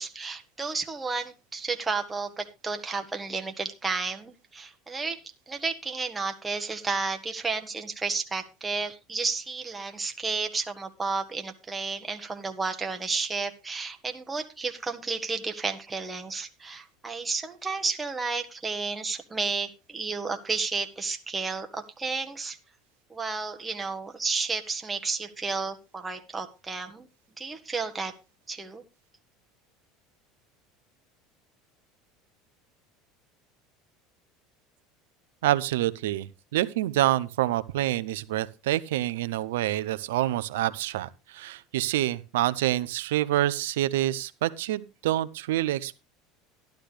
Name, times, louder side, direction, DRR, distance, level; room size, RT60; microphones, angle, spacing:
voice 1, 0.0-5.2 5.5-22.6 23.1-27.1 27.4-28.1 28.5-28.8, right 4 dB, 15° right, 5 dB, 1.3 m, -32 dB
voice 2, 35.4-46.0, right 14 dB, 85° right, 15 dB, 0.7 m, -27 dB
12.0 x 11.5 x 3.3 m, 0.29 s
supercardioid pair, 100°, 0 cm